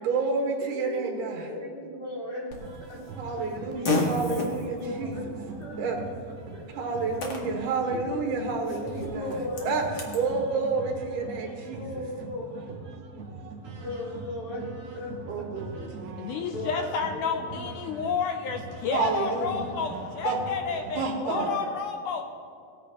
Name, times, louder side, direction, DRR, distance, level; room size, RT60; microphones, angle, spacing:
voice 1, 0.0-1.5 3.2-5.2 5.8-6.0 6.8-9.4 9.6-9.8 10.1-11.9 15.3-16.5 18.9-19.7 20.2-20.4 21.0-21.5, right 4 dB, 75° right, 1 dB, 2.8 m, -30 dB
voice 2, 0.6-1.1 1.5-3.0 3.3-3.7 4.3-7.4 7.9-8.3 8.8-9.7 10.0-10.6 11.7-12.6 13.4-15.5 16.0-16.1 16.5-17.7 20.7-20.8 21.3-22.0, left 1 dB, 35° left, -5 dB, 2.7 m, -38 dB
Fart, 2.5-10.2, left 2 dB, 55° left, 1.1 m, -35 dB
sound 1, 2.6-21.0, right 3 dB, 55° right, 2.2 m, -42 dB
voice 3, 16.2-22.2, left 6 dB, 80° left, 5 dB, 2.0 m, -30 dB
18.0 x 9.5 x 2.9 m, 2.3 s
omnidirectional pair, 3.9 m